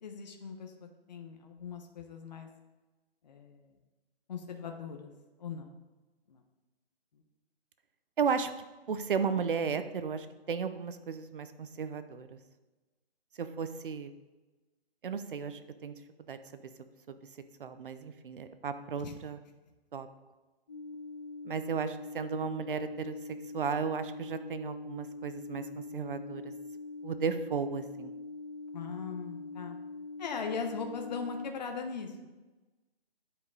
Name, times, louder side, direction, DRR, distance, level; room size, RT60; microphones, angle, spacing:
voice 1, 0.0-2.5 3.2-3.7 4.3-5.1 5.4-5.7 6.3-6.4 19.0-19.1 28.7-29.8 30.2-32.3, left 5 dB, 40° left, 4 dB, 1.0 m, -39 dB
voice 2, 8.2-8.5 8.9-12.4 13.4-14.1 15.0-15.9 16.3-16.4 17.1-17.2 17.6-19.4 19.9-20.1 21.4-23.2 23.5-26.5 27.0-28.1, right 6 dB, 55° right, 10 dB, 0.7 m, -34 dB
sound 1, 20.7-31.5, left 3 dB, 25° left, 0.6 m, -43 dB
9.9 x 5.1 x 4.7 m, 1.2 s
hypercardioid pair, 165°, 32 cm